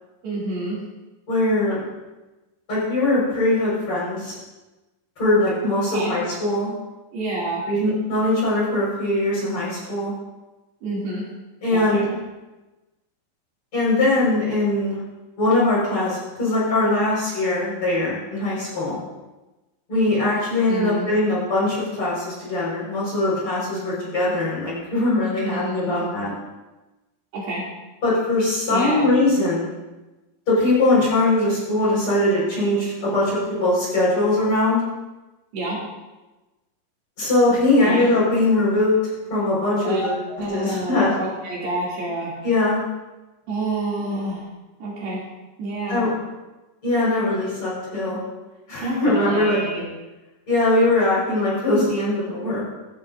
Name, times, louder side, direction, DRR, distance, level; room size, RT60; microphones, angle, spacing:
voice 1, 0.2-0.8 5.9-6.2 7.1-7.6 10.8-11.2 11.7-12.1 20.7-21.1 25.4-26.1 27.3-27.6 28.7-29.1 35.5-35.8 37.8-38.1 39.8-42.3 43.5-44.5 44.8-45.2 45.6-46.1 48.8-49.8, right 2 dB, 70° right, -6 dB, 4.7 m, -28 dB
voice 2, 1.3-1.9 2.7-4.3 5.2-6.7 7.7-10.1 11.6-12.2 13.7-15.0 15.4-19.0 19.9-26.3 28.0-29.7 30.5-34.8 37.2-39.0 39.3-40.1 40.5-41.1 42.4-42.8 45.9-46.1 46.8-48.2 48.7-49.6 50.5-52.6, left 2 dB, 30° left, -7 dB, 5.6 m, -21 dB
17.5 x 11.5 x 2.6 m, 1.1 s
omnidirectional pair, 4.9 m